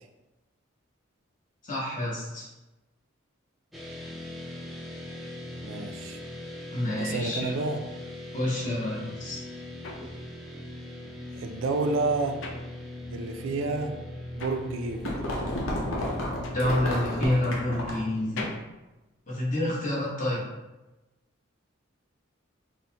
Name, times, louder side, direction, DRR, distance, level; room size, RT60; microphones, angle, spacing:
voice 1, 1.6-2.5 6.7-7.5 8.3-9.4 16.5-18.5 19.3-20.5, left 1 dB, 40° left, -6 dB, 1.0 m, -28 dB
sound 1, 3.7-18.1, left 1 dB, ahead, 0.3 m, -40 dB
voice 2, 5.6-6.2 7.0-7.8 11.3-12.4 13.1-14.0 14.3-15.2, right 3 dB, 75° right, 5 dB, 0.3 m, -29 dB
sound 2, 9.8-13.4 13.7-19.9, left 3 dB, 70° left, 0.4 m, -44 dB
sound 3, 14.4-18.1, left 1 dB, 85° left, 0.7 m, -32 dB
3.9 x 2.1 x 2.8 m, 1.1 s
head